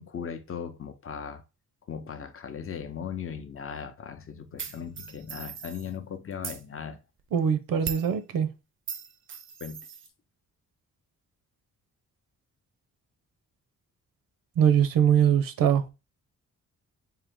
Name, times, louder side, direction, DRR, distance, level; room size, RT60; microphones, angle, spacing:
voice 1, 0.0-1.4 1.9-7.0 9.6-9.8, left 7 dB, 40° left, 0.6 m, -38 dB
sound 1, 4.6-5.9 6.3-6.6 7.8-8.1 8.9-10.1, right 7 dB, 40° right, 0.4 m, -38 dB
voice 2, 7.3-8.5 14.6-15.9, right 8 dB, 90° right, 0.7 m, -22 dB
3.6 x 2.8 x 3.5 m
wide cardioid pair, 125°, 33 cm